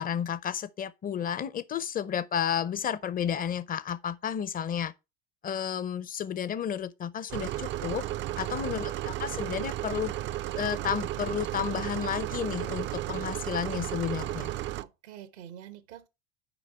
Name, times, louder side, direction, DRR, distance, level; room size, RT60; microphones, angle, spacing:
voice 1, 0.0-4.9 5.4-8.0 8.4-10.1 10.6-14.5, left 8 dB, 25° left, 0.5 m, -32 dB
sound 1, 7.3-14.8, right 14 dB, 35° right, 0.4 m, -34 dB
voice 2, 8.3-8.7 14.8-16.1, right 10 dB, 90° right, 0.9 m, -47 dB
6.8 x 4.8 x 4.3 m
hypercardioid pair, 80°, 33 cm